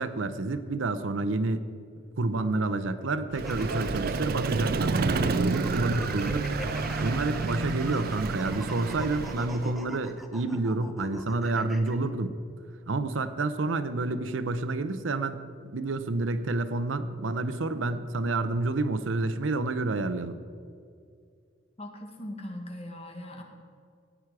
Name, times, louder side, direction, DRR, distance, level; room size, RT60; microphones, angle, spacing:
voice 1, 0.0-1.6 2.2-12.4 12.9-20.4, right 2 dB, 85° right, 12 dB, 0.7 m, -29 dB
sound 1, 3.3-12.0, equal, ahead, 0.9 m, -42 dB
Vehicle, 3.3-9.8, right 4 dB, 50° right, 0.5 m, -30 dB
voice 2, 21.8-23.4, left 1 dB, 35° left, 3 dB, 1.5 m, -40 dB
16.0 x 9.0 x 4.8 m, 2.3 s
head